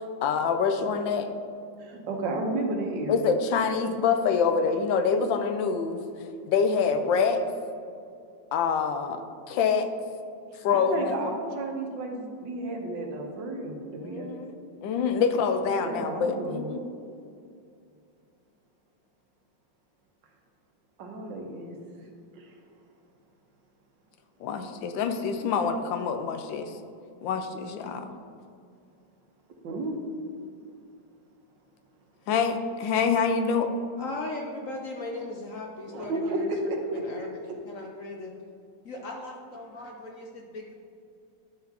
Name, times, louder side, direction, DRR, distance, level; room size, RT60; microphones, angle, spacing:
voice 1, 0.2-1.3 3.1-6.0 6.4-7.4 8.5-9.9 10.6-11.2 14.0-14.5 14.8-16.8 24.4-26.7 27.2-28.1 32.3-33.7, left 6 dB, 85° left, 8 dB, 1.3 m, -26 dB
voice 2, 1.8-3.2 10.5-14.4 15.8-16.7 21.0-21.7 22.4-22.5 29.6-29.9 35.9-37.0, right 2 dB, 75° right, 2 dB, 1.6 m, -32 dB
voice 3, 34.0-37.3 37.6-38.3 38.8-40.7, left 2 dB, 65° left, 0 dB, 0.8 m, -38 dB
11.0 x 5.8 x 2.9 m, 2.4 s
omnidirectional pair, 2.0 m